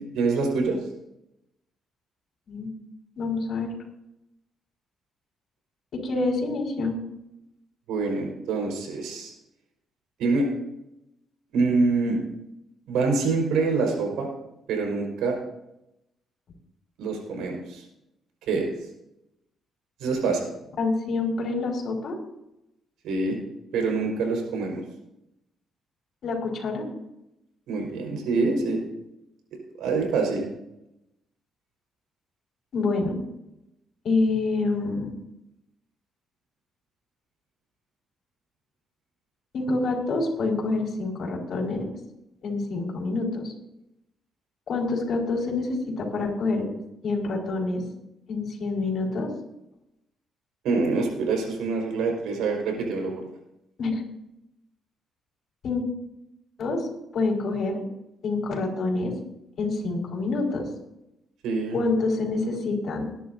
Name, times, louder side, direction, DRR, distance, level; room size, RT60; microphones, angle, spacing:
voice 1, 0.1-0.8 7.9-9.3 10.2-10.5 11.5-12.2 12.9-14.3 14.7-15.4 17.0-17.8 18.5-18.7 20.0-20.4 23.0-23.4 23.7-24.8 27.7-28.8 29.8-30.4 50.6-53.3 61.4-61.8, right 4 dB, 90° right, 1 dB, 4.6 m, -25 dB
voice 2, 3.2-3.7 5.9-7.0 20.8-22.2 26.2-26.9 32.7-33.2 34.0-35.1 39.5-41.9 42.4-43.5 44.7-46.7 47.0-47.8 48.3-49.3 53.8-54.0 55.6-55.8 56.6-56.9 57.1-57.8 58.2-59.1 59.6-60.7 61.7-63.1, left 3 dB, 60° left, 0 dB, 4.7 m, -27 dB
21.5 x 11.0 x 2.7 m, 0.87 s
cardioid pair, 90°, 0 cm